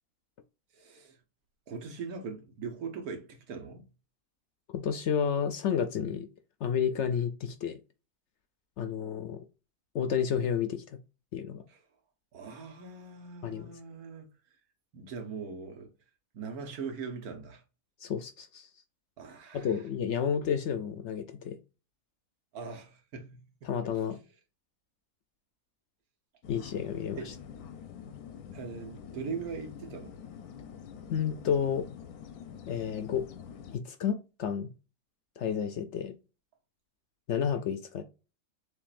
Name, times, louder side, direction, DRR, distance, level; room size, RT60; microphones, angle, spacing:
voice 1, 0.7-1.2 1.7-3.9 11.7-11.8 12.3-14.3 14.9-15.9 16.3-17.6 19.2-19.8 22.5-23.8 24.1-24.2 27.1-27.3 28.5-30.1, right 5 dB, 85° right, 1.6 m, -41 dB
voice 2, 4.7-6.3 6.6-7.8 8.8-9.4 9.9-10.8 11.3-11.6 13.4-13.7 18.0-18.7 19.5-21.6 23.7-24.2 26.5-27.2 31.1-31.9 32.7-33.2 33.7-34.7 35.4-36.2 37.3-38.0, left 8 dB, 65° left, 0.7 m, -31 dB
sound 1, 26.4-33.8, left 7 dB, 90° left, 1.2 m, -46 dB
6.9 x 2.6 x 2.4 m
omnidirectional pair, 1.5 m